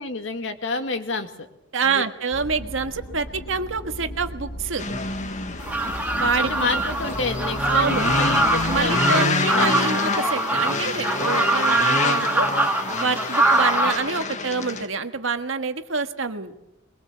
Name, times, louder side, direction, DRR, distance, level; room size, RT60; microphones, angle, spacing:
voice 1, 0.0-1.5 1.8-2.1 6.3-10.0, left 3 dB, 70° left, 7 dB, 2.2 m, -29 dB
voice 2, 1.7-4.8 6.2-6.7 7.6-8.1 8.6-12.5 13.0-16.5, right 4 dB, 85° right, 7 dB, 1.6 m, -27 dB
sound 1, 2.3-8.8, equal, 85° left, 3.1 m, -37 dB
sound 2, 4.8-14.9, left 3 dB, 40° left, 1.5 m, -27 dB
sound 3, 5.6-13.9, right 2 dB, 10° right, 2.2 m, -23 dB
22.5 x 22.5 x 7.4 m, 0.88 s
head